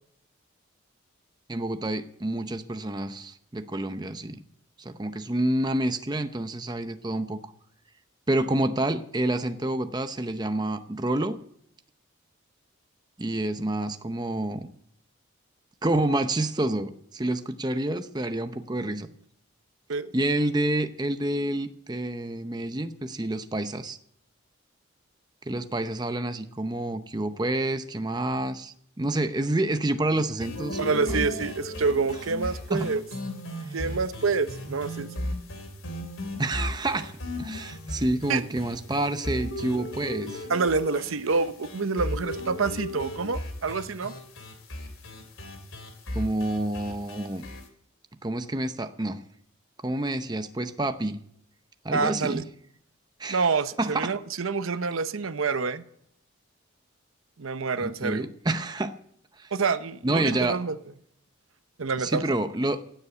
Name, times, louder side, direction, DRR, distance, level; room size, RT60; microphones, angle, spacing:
voice 1, 1.5-4.4 4.8-7.4 8.3-11.4 13.2-14.7 15.8-19.1 20.1-24.0 25.5-31.3 32.7-32.9 33.7-33.8 36.4-40.5 46.1-47.4 48.2-49.2 49.8-51.2 51.8-52.4 53.2-53.5 53.8-54.1 57.8-59.0 59.4-59.5 60.0-60.6 62.0-62.8, right 1 dB, 20° right, 0.7 m, -28 dB
sound 1, 30.4-47.6, left 1 dB, 80° left, 3.0 m, -35 dB
voice 2, 30.8-33.0 33.7-35.3 38.3-38.5 40.5-44.1 51.9-52.4 53.3-55.8 57.4-58.3 59.5-60.7 61.8-62.4, right 4 dB, 80° right, 0.7 m, -27 dB
16.5 x 8.3 x 8.0 m
head